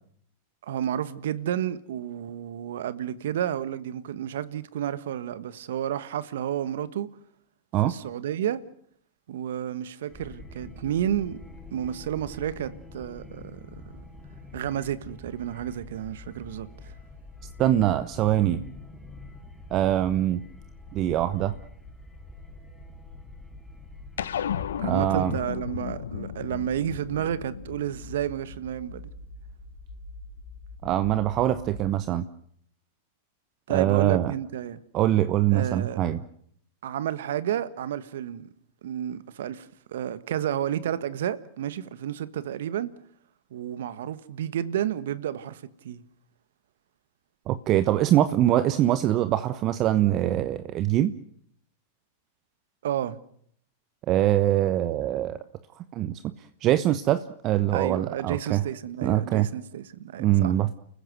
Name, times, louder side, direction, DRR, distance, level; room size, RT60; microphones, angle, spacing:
voice 1, 0.6-7.1 7.8-8.6 9.3-11.4 11.7-13.6 14.5-16.9 24.8-29.0 33.7-34.8 35.5-36.0 36.8-38.5 38.8-42.9 43.5-46.0 52.8-53.2 57.7-60.6, right 10 dB, 70° right, 1.5 m, -31 dB
sound 1, 10.1-25.4, left 2 dB, 5° left, 3.8 m, -46 dB
voice 2, 17.6-18.6 19.7-20.4 20.9-21.5 24.8-25.4 30.8-32.2 33.7-34.3 34.9-36.2 47.5-51.1 54.1-55.4 55.9-56.2 56.6-58.6 59.0-59.5 60.2-60.8, right 13 dB, 40° right, 1.1 m, -23 dB
sound 2, 19.2-31.9, left 2 dB, 45° left, 5.3 m, -47 dB
sound 3, 24.2-28.9, left 9 dB, 80° left, 0.9 m, -34 dB
30.0 x 15.0 x 8.0 m
hypercardioid pair, 110°, 0 cm